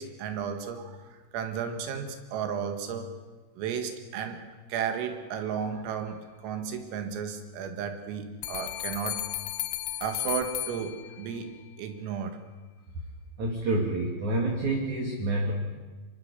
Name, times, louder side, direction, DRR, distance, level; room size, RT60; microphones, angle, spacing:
voice 1, 0.0-3.1 3.6-4.4 4.7-9.2 10.0-12.4 15.5-15.6, right 7 dB, 80° right, 6 dB, 4.5 m, -34 dB
sound 1, 8.4-11.5, left 15 dB, 85° left, 3.8 m, -34 dB
voice 2, 13.4-15.5, right 2 dB, 45° right, 0 dB, 3.0 m, -28 dB
25.5 x 24.0 x 6.8 m, 1.3 s
omnidirectional pair, 5.9 m